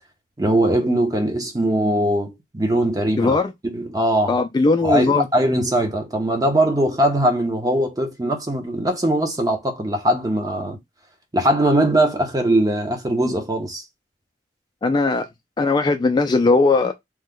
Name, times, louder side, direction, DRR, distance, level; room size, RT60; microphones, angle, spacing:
voice 1, 0.4-4.4 4.8-10.8 11.3-13.8, right 1 dB, 20° right, 0.7 m, -21 dB
voice 2, 3.2-3.5 4.3-5.3 14.8-15.2 15.6-16.9, left 3 dB, 25° left, 0.3 m, -18 dB
3.0 x 2.2 x 3.6 m
head